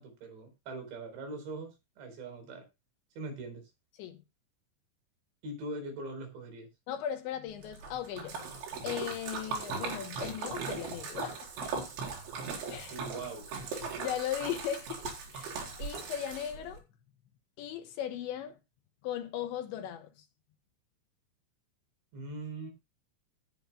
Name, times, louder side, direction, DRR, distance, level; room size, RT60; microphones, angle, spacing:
voice 1, 0.0-2.7 3.2-3.6 5.4-6.7 12.9-13.5 22.1-22.7, right 2 dB, 70° right, 6.5 m, -41 dB
voice 2, 6.9-8.4 8.8-11.9 12.7-13.0 13.8-16.8 17.6-18.6 19.0-20.1, left 10 dB, 75° left, 3.3 m, -38 dB
Splash splatter, 7.6-16.8, right 5 dB, 85° right, 6.2 m, -39 dB
18.5 x 9.0 x 2.3 m
omnidirectional pair, 5.4 m